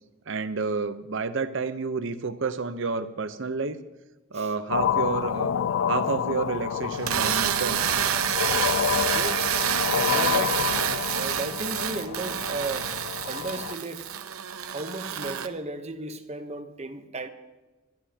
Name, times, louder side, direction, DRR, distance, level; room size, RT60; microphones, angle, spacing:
voice 1, 0.3-3.8 4.3-5.5 5.9-7.8, right 4 dB, 65° right, 0.8 m, -30 dB
sound 1, 4.7-13.8, left 8 dB, 65° left, 0.3 m, -29 dB
sound 2, 6.9-15.5, right 9 dB, 90° right, 0.7 m, -28 dB
voice 2, 9.1-9.5 10.1-13.0 13.2-14.1 14.6-17.3, right 2 dB, 30° right, 0.9 m, -35 dB
22.5 x 12.0 x 2.9 m
head